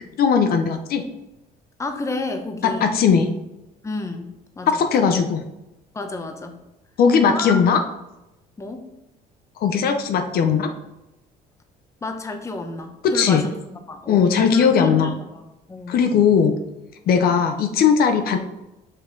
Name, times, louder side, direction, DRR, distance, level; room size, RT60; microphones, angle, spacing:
voice 1, 0.2-1.0 2.6-3.3 4.7-5.4 7.0-7.8 9.6-10.7 13.0-13.4 14.1-15.1 15.9-16.5 17.1-18.4, left 6 dB, 65° left, 6 dB, 0.7 m, -18 dB
voice 2, 1.8-2.9 3.8-5.1 5.9-6.6 7.2-7.6 8.6-8.8 12.0-16.0, left 3 dB, 15° left, 6 dB, 0.8 m, -31 dB
5.5 x 5.4 x 3.9 m, 0.95 s
cardioid pair, 110°, 17 cm